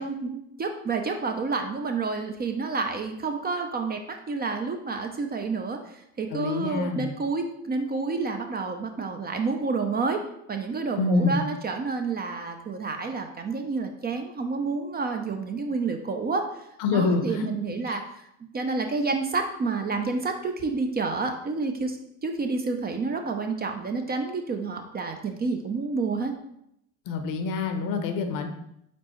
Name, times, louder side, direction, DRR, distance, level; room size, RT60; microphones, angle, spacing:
voice 1, 0.0-10.2 10.5-16.6 16.9-18.2 18.5-26.3, right 4 dB, 25° right, 5 dB, 0.5 m, -29 dB
voice 2, 6.3-7.1 11.0-11.4 16.8-17.5 17.9-18.0 27.1-28.5, left 3 dB, 55° left, 7 dB, 0.8 m, -26 dB
4.4 x 4.0 x 3.0 m, 0.76 s
hypercardioid pair, 70°, 39 cm